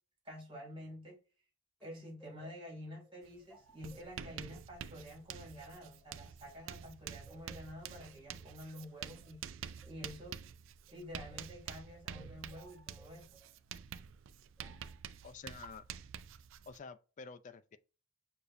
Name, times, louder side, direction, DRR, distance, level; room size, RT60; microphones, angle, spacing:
voice 1, 0.2-1.2 1.8-9.4 9.9-10.4 10.9-13.4, equal, 25° right, 2.1 m, -49 dB
sound 1, 1.8-6.8 7.3-11.6 12.1-13.6 14.6-15.0, equal, 5° left, 1.0 m, -63 dB
Writing, 3.2-3.4 3.7-16.8, right 8 dB, 65° right, 0.3 m, -48 dB
voice 2, 15.2-15.8 16.7-17.8, left 5 dB, 40° left, 0.3 m, -49 dB
6.7 x 2.7 x 2.5 m
head